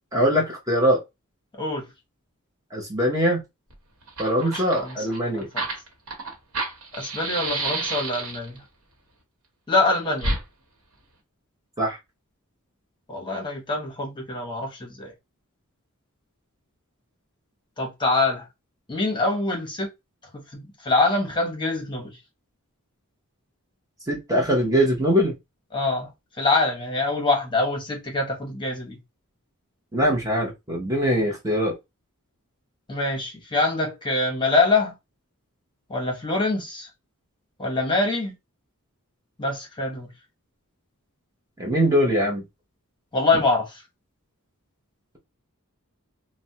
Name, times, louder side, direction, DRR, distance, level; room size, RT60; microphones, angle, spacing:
voice 1, 0.1-1.0 2.7-3.4 4.2-5.5 11.8-12.0 24.1-25.3 29.9-31.7 41.6-42.4, equal, 15° right, 0.7 m, -22 dB
Fire, 3.7-3.8 4.0-8.6 10.2-10.4, right 2 dB, 70° right, 1.0 m, -30 dB
voice 2, 4.4-5.1 5.4-5.5 7.0-8.6 9.7-10.3 13.1-15.1 17.8-18.5 18.9-19.9 20.5-22.2 25.7-26.1 26.4-29.0 32.9-34.9 35.9-36.9 37.6-38.3 39.4-40.1 43.1-43.8, left 3 dB, 20° left, 0.9 m, -24 dB
3.2 x 2.1 x 2.7 m
head